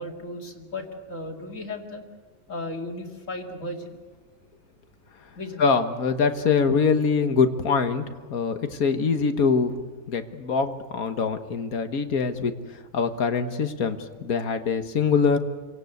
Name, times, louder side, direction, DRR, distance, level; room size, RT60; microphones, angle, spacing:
voice 1, 0.0-2.0 2.5-4.0 5.4-5.6, left 1 dB, 60° left, 1 dB, 2.7 m, -35 dB
voice 2, 5.6-8.0 8.3-9.7 10.1-12.5 12.9-15.4, left 5 dB, 85° left, 8 dB, 1.8 m, -23 dB
27.5 x 17.5 x 8.0 m, 1.3 s
omnidirectional pair, 1.5 m